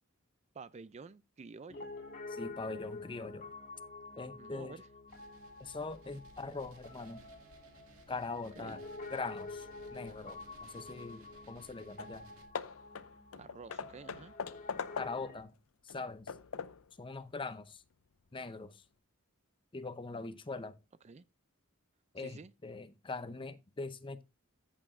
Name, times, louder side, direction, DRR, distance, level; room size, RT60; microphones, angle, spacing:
voice 1, 0.5-1.9 4.4-4.9 8.6-8.8 13.4-14.3 21.0-21.2 22.2-22.5, right 4 dB, 30° right, 0.4 m, -50 dB
Piano, 1.7-15.4, left 3 dB, 40° left, 1.9 m, -49 dB
voice 2, 2.3-3.5 4.2-4.8 5.6-7.2 8.1-8.8 9.1-12.3 15.0-15.5 15.8-16.3 17.0-17.8 18.3-18.8 19.7-20.8 22.1-24.2, left 3 dB, 25° left, 0.7 m, -42 dB
sound 1, 5.1-12.5, right 2 dB, 85° right, 2.0 m, -61 dB
Hammer / Wood, 11.6-11.7 12.0-12.2 12.5-15.4 15.9-16.9, left 6 dB, 80° left, 0.6 m, -42 dB
14.0 x 6.9 x 2.5 m
head